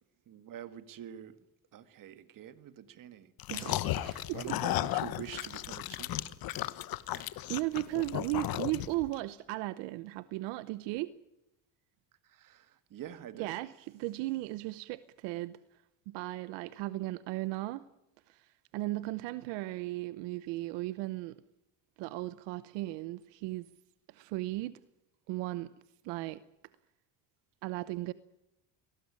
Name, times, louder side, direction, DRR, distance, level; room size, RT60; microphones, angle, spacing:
voice 1, 0.3-1.4 1.7-3.3 4.3-6.4 7.1-7.5 12.2-13.6, right 10 dB, 50° right, 1.9 m, -46 dB
sound 1, 3.4-9.1, left 14 dB, 55° left, 1.2 m, -35 dB
voice 2, 3.5-4.6 7.2-11.1 13.3-15.6 16.1-17.9 18.3-18.5 18.7-21.4 22.0-23.7 24.1-24.8 25.3-25.7 26.0-26.4 27.6-28.1, right 18 dB, 80° right, 0.9 m, -36 dB
23.0 x 19.0 x 9.9 m
cardioid pair, 120°, 42 cm